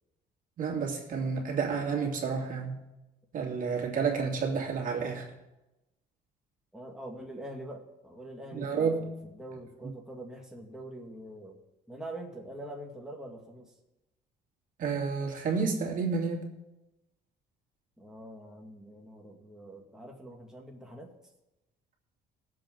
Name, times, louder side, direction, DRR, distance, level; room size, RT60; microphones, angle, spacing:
voice 1, 0.6-2.8 3.3-5.3 8.5-9.3 9.8-9.9 14.8-16.5, right 5 dB, 55° right, 1 dB, 2.6 m, -30 dB
voice 2, 6.7-11.6 11.9-13.7 18.0-21.1, right 1 dB, 5° right, -1 dB, 2.0 m, -44 dB
21.0 x 7.7 x 3.9 m, 0.97 s
cardioid pair, 110°, 17 cm